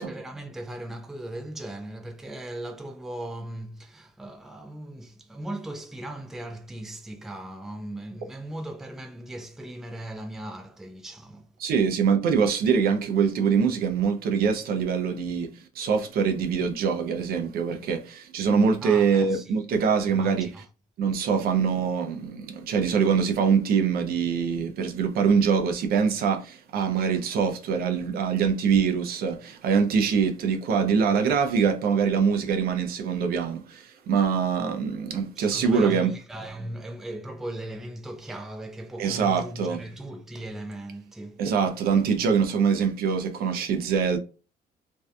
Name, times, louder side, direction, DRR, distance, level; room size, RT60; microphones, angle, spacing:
voice 1, 0.0-11.5 18.8-19.6 20.1-20.7 35.4-41.4, right 1 dB, ahead, 0.4 m, -38 dB
voice 2, 11.6-15.5 15.8-20.5 21.0-36.1 39.0-39.8 41.4-44.2, right 6 dB, 65° right, 0.5 m, -24 dB
2.6 x 2.2 x 2.2 m
cardioid pair, 110°, 17 cm